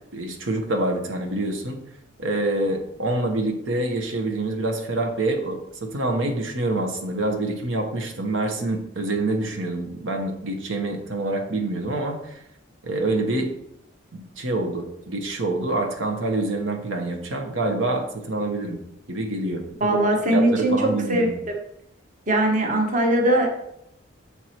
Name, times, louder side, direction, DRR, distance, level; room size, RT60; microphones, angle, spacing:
voice 1, 0.1-1.8 2.2-12.4 12.8-13.5 14.1-18.8 19.1-20.0 20.3-21.4, right 2 dB, 85° right, 3 dB, 1.1 m, -26 dB
voice 2, 19.8-20.8 21.1-21.6 22.3-23.5, right 1 dB, 40° right, 2 dB, 1.0 m, -20 dB
6.9 x 4.7 x 4.4 m, 0.77 s
head